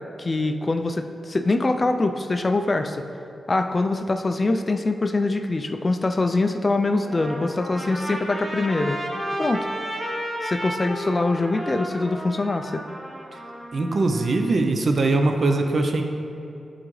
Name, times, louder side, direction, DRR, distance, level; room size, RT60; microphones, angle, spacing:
voice 1, 0.2-3.0 3.5-9.0 9.4-9.7 10.4-12.8, left 2 dB, 30° left, 6 dB, 0.3 m, -23 dB
Trumpet, 6.9-14.3, equal, 25° right, 0.9 m, -33 dB
voice 2, 13.7-16.0, right 2 dB, 50° right, 5 dB, 0.5 m, -21 dB
11.0 x 3.9 x 3.2 m, 2.7 s
wide cardioid pair, 120°, 0 cm